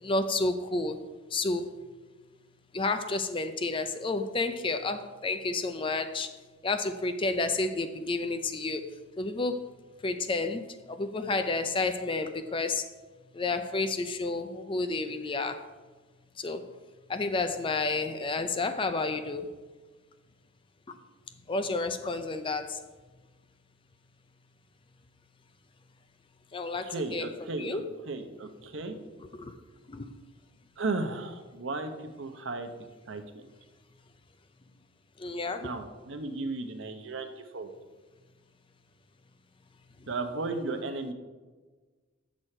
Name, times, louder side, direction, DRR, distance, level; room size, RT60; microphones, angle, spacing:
voice 1, 0.0-1.0 1.3-1.7 2.7-6.3 6.6-8.8 9.2-9.6 10.0-10.6 11.0-12.8 13.4-15.6 16.4-16.6 17.1-19.5 21.5-22.8 26.5-27.3 27.6-27.8 29.4-29.5 29.9-30.1 35.2-35.6, left 3 dB, 25° left, 9 dB, 0.5 m, -30 dB
voice 2, 26.8-29.0 30.8-32.7 33.1-33.4 35.6-37.7 40.1-41.1, right 3 dB, 65° right, 6 dB, 0.8 m, -35 dB
8.2 x 6.2 x 4.3 m, 1.3 s
head